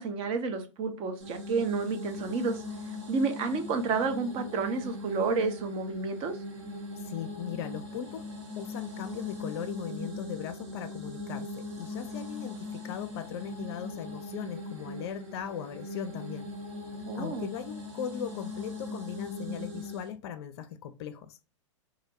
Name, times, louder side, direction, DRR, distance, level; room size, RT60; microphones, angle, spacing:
voice 1, 0.0-2.6 3.1-6.4 17.1-17.5, right 4 dB, 35° right, 0.6 m, -30 dB
sound 1, 1.2-20.1, left 2 dB, 50° right, 0.9 m, -40 dB
voice 2, 7.0-8.3 8.6-16.5 17.1-21.4, left 8 dB, 55° left, 0.4 m, -38 dB
2.4 x 2.1 x 2.7 m
hypercardioid pair, 100°, 17 cm